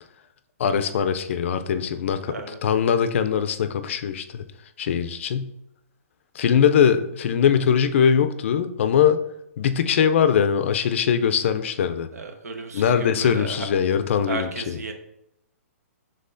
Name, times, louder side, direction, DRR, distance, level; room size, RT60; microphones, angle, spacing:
voice 1, 0.6-2.3 2.6-4.4 4.8-5.5 6.4-9.2 9.6-12.1 12.7-14.8, left 7 dB, 55° left, 10 dB, 0.4 m, -21 dB
voice 2, 2.3-2.6 12.1-13.7 14.3-14.9, right 4 dB, 90° right, 5 dB, 0.8 m, -34 dB
5.4 x 3.6 x 2.5 m, 0.81 s
hypercardioid pair, 155°, 8 cm